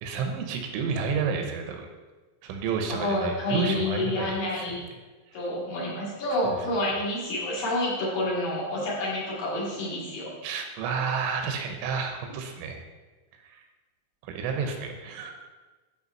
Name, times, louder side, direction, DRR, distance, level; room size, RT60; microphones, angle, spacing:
voice 1, 0.0-1.9 2.4-4.7 6.5-6.6 10.4-12.8 13.4-13.6 14.2-15.3, right 5 dB, 85° right, 4 dB, 3.4 m, -30 dB
voice 2, 2.9-4.8 5.3-10.3, left 1 dB, 55° left, -7 dB, 3.5 m, -28 dB
11.0 x 4.6 x 5.6 m, 1.3 s
omnidirectional pair, 5.5 m